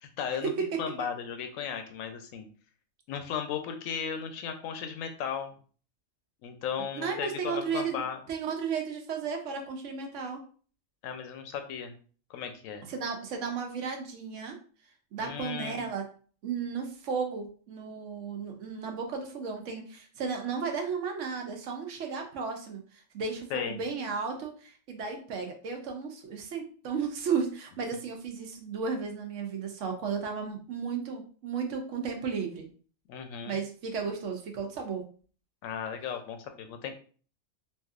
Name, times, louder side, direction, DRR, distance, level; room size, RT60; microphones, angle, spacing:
voice 1, 0.0-0.5 0.8-2.5 3.1-5.6 6.4-8.2 11.0-11.9 12.3-12.9 15.2-15.8 23.5-23.8 33.1-33.5 35.6-36.9, left 7 dB, 85° left, 6 dB, 1.0 m, -36 dB
voice 2, 6.9-10.4 12.9-14.6 15.1-16.1 16.4-32.7 33.5-35.0, right 5 dB, 70° right, 3 dB, 1.0 m, -34 dB
3.3 x 2.6 x 2.4 m, 0.42 s
omnidirectional pair, 1.4 m